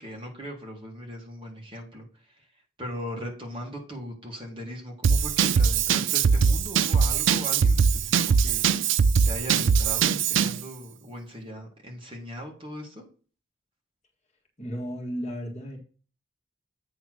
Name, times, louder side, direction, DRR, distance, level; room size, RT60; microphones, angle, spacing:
voice 1, 0.0-2.5 2.8-8.7 9.2-13.0, equal, 25° right, -1 dB, 2.1 m, -39 dB
Drum kit / Drum, 5.0-10.6, right 6 dB, 70° right, 0.4 m, -22 dB
voice 2, 14.6-15.8, equal, 35° left, -1 dB, 1.8 m, -34 dB
8.5 x 3.4 x 6.3 m, 0.38 s
head